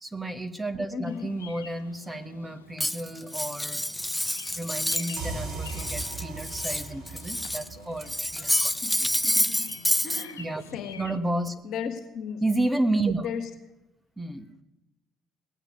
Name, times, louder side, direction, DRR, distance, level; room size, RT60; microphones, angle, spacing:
voice 1, 0.0-3.8 4.5-8.7 9.0-9.1 10.4-10.6 10.9-11.5 12.4-13.3 14.2-14.5, right 2 dB, 10° right, 7 dB, 1.5 m, -31 dB
voice 2, 0.9-1.3 8.8-9.7 10.0-10.4 10.7-11.1 11.6-12.4 13.2-13.4, left 7 dB, 60° left, 5 dB, 1.9 m, -35 dB
Bird vocalization bird call bird song, 1.1-11.2, left 6 dB, 90° left, 0.7 m, -48 dB
Cutlery silverware, 2.8-5.3 5.5-7.7 8.0-10.2, left 1 dB, 5° left, 0.6 m, -28 dB
sound 1, 5.2-8.7, right 4 dB, 60° right, 7.4 m, -38 dB
19.0 x 8.1 x 9.5 m, 1.0 s
hypercardioid pair, 55°, 0 cm